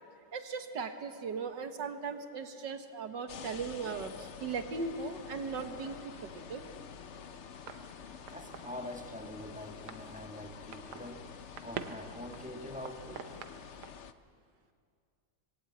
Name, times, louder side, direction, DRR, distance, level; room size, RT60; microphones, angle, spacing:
voice 1, 0.3-6.6, right 5 dB, 60° right, 7 dB, 1.9 m, -38 dB
sound 1, 3.3-14.1, left 7 dB, 65° left, 0.7 m, -48 dB
sound 2, 5.2-13.9, right 8 dB, 85° right, 1.8 m, -49 dB
voice 2, 8.3-11.2 11.6-13.4, left 1 dB, 5° right, 3 dB, 1.3 m, -45 dB
25.5 x 20.0 x 8.8 m, 2.3 s
omnidirectional pair, 2.3 m